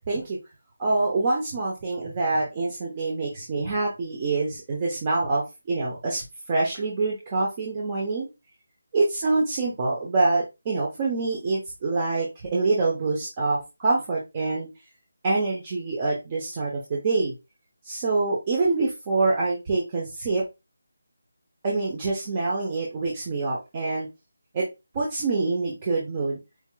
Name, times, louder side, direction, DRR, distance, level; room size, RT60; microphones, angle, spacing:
voice 1, 0.1-0.4 0.8-8.3 8.9-14.7 15.2-17.3 17.8-20.4 21.6-24.1 24.5-24.6 24.9-26.4, right 3 dB, 25° right, -3 dB, 0.8 m, -26 dB
4.6 x 2.8 x 2.2 m, 0.25 s
figure-of-eight pair, 170°, 0 cm